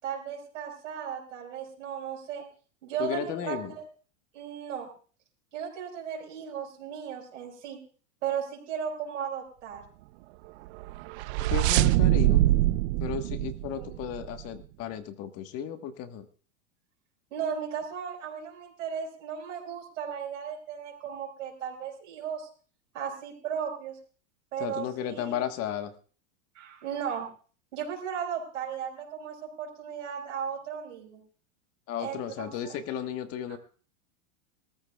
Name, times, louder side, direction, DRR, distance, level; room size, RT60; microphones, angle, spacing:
voice 1, 0.0-2.4 2.8-3.8 4.3-4.9 5.5-7.8 8.2-9.8 13.7-13.9 17.3-22.5 22.9-24.0 24.5-25.4 26.5-27.3 27.7-31.2 32.0-32.7, right 7 dB, 80° right, -1 dB, 4.7 m, -36 dB
voice 2, 3.0-3.8 11.5-12.5 13.0-16.3 24.6-25.9 31.9-33.6, left 9 dB, 40° left, 9 dB, 1.3 m, -34 dB
sound 1, 10.8-14.4, right 17 dB, 60° right, 0.5 m, -24 dB
21.5 x 14.0 x 2.3 m, 0.41 s
supercardioid pair, 135°, 39 cm